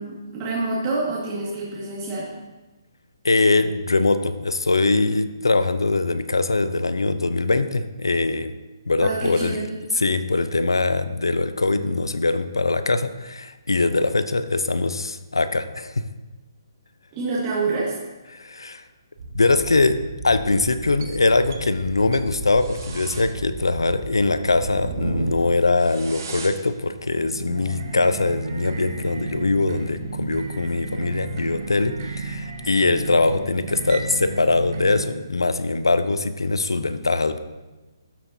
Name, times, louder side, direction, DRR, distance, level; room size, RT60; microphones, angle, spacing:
voice 1, 0.0-2.3 9.0-9.8 17.1-18.0, right 3 dB, 25° right, -7 dB, 1.9 m, -27 dB
voice 2, 3.2-8.5 8.9-9.6 9.9-15.9 18.3-18.8 19.3-20.0 20.2-37.4, left 3 dB, 85° left, 12 dB, 0.5 m, -22 dB
sound 1, 19.2-35.1, right 3 dB, 50° right, 1.1 m, -34 dB
12.5 x 7.3 x 2.7 m, 1.1 s
figure-of-eight pair, 140°, 2 cm